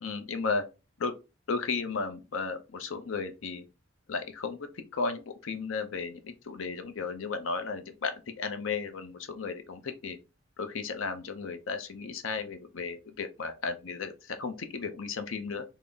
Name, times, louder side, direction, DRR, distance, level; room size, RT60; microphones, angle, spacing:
voice 1, 0.0-0.6 1.0-1.1 1.5-3.7 4.1-10.2 10.6-15.6, left 4 dB, 85° left, 0.6 m, -34 dB
3.8 x 2.0 x 3.3 m
head